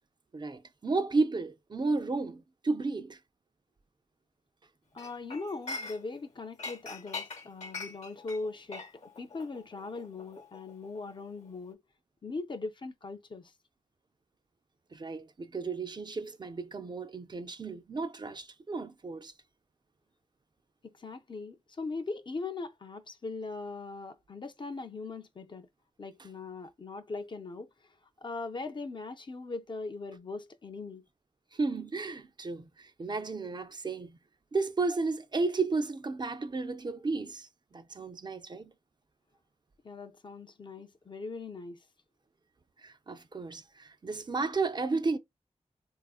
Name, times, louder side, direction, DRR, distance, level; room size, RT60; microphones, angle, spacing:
voice 1, 0.3-3.2 14.9-19.3 31.5-34.2 34.5-38.7 42.8-45.2, right 3 dB, 35° right, 0.4 m, -33 dB
voice 2, 4.9-11.8 12.2-13.5 20.8-25.7 26.0-27.7 28.2-31.0 39.8-41.8, left 3 dB, 40° left, 0.4 m, -40 dB
Chink clink, 5.0-6.3 6.6-11.2 11.5-11.7, left 3 dB, 70° left, 0.9 m, -42 dB
3.4 x 2.4 x 2.3 m
wide cardioid pair, 100°, 12 cm